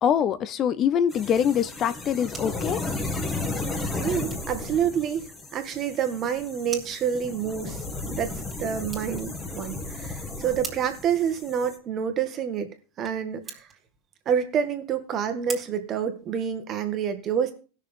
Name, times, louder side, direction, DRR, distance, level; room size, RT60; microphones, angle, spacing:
voice 1, 0.0-2.9, left 8 dB, 35° left, 0.5 m, -24 dB
sound 1, 1.1-11.8, left 2 dB, 15° left, 1.8 m, -34 dB
sound 2, 2.2-16.8, right 5 dB, 15° right, 2.6 m, -46 dB
voice 2, 4.0-5.3 5.5-8.3 8.6-12.7 13.0-13.7 14.2-17.5, right 8 dB, 35° right, 1.8 m, -28 dB
17.5 x 6.5 x 3.6 m
supercardioid pair, 130°, 0 cm